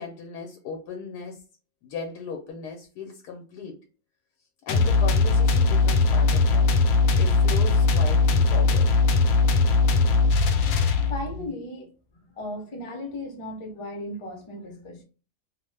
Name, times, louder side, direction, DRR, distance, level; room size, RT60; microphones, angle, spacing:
voice 1, 0.0-1.4 1.8-3.8 4.7-6.7 7.2-8.9, left 5 dB, 90° left, 1.2 m, -37 dB
sound 1, 4.7-11.4, left 3 dB, 70° left, 0.9 m, -20 dB
voice 2, 11.1-15.0, left 1 dB, 40° left, 0.4 m, -36 dB
3.0 x 2.1 x 3.2 m
omnidirectional pair, 1.7 m